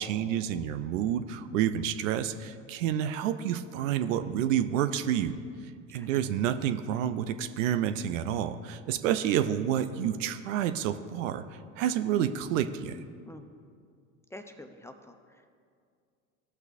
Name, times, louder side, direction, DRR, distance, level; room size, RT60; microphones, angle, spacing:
voice 1, 0.0-5.4 5.9-11.4 11.8-13.0, right 10 dB, 70° right, 10 dB, 0.6 m, -29 dB
voice 2, 14.3-15.5, left 1 dB, 5° left, 6 dB, 0.5 m, -47 dB
16.0 x 5.9 x 2.7 m, 2.2 s
hypercardioid pair, 85°, 39 cm